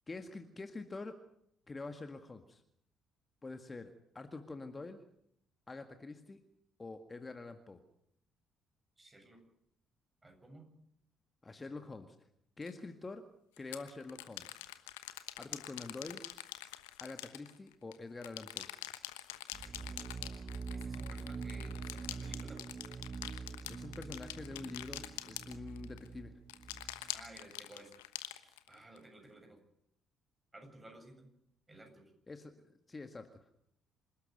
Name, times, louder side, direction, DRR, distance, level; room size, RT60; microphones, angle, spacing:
voice 1, 0.1-1.2 1.7-2.6 3.4-5.0 5.7-6.4 6.8-7.8 11.4-12.2 12.6-13.2 13.6-14.6 15.4-16.2 17.0-18.7 23.7-26.3 32.3-32.5 32.9-33.5, left 3 dB, 25° left, 7 dB, 1.9 m, -46 dB
voice 2, 9.0-9.4 10.2-10.7 11.6-11.7 19.6-20.1 20.7-22.6 27.1-28.0 28.4-29.6 30.5-31.3 31.7-32.1, right 1 dB, 20° right, 4 dB, 7.7 m, -55 dB
sound 1, 12.6-12.7 13.6-17.9 18.2-26.1 26.5-29.0, left 15 dB, 75° left, 1.1 m, -45 dB
sound 2, 19.5-27.2, right 4 dB, 35° right, 1.7 m, -45 dB
27.0 x 12.5 x 9.2 m, 0.71 s
figure-of-eight pair, 45°, 0 cm